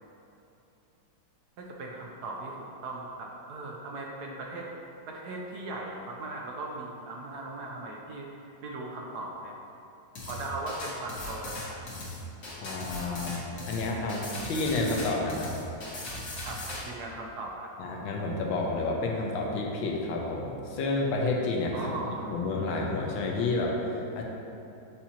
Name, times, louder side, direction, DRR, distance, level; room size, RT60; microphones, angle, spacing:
voice 1, 1.6-4.7 5.1-8.3 8.6-9.5 10.2-12.0 16.4-17.7 21.7-22.3, right 2 dB, 70° right, -1 dB, 1.0 m, -38 dB
sound 1, 10.2-16.8, left 2 dB, 65° left, 1.9 m, -38 dB
voice 2, 12.6-15.5 17.8-24.2, left 2 dB, 85° left, -1 dB, 1.5 m, -30 dB
8.5 x 4.3 x 2.8 m, 2.9 s
omnidirectional pair, 2.1 m